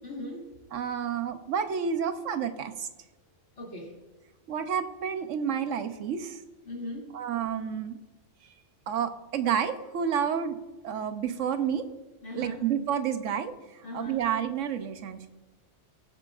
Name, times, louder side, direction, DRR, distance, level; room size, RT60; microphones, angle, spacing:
voice 1, 0.0-0.5 3.6-3.9 6.6-7.1 12.2-12.6 13.8-14.2, left 1 dB, 80° left, -3 dB, 3.1 m, -39 dB
voice 2, 0.7-2.9 4.5-6.4 7.1-8.0 8.9-10.6 10.8-11.9 12.3-13.5 13.9-15.3, right 8 dB, 90° right, 9 dB, 1.1 m, -30 dB
20.5 x 7.7 x 2.4 m, 1.2 s
omnidirectional pair, 1.3 m